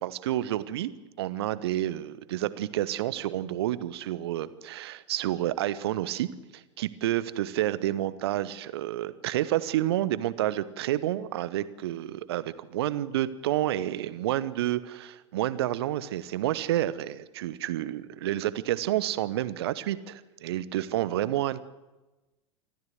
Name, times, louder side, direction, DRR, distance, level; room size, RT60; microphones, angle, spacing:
voice 1, 0.0-21.6, right 13 dB, 55° right, 16 dB, 1.1 m, -29 dB
26.0 x 14.0 x 7.9 m, 1.1 s
figure-of-eight pair, 90°, 16 cm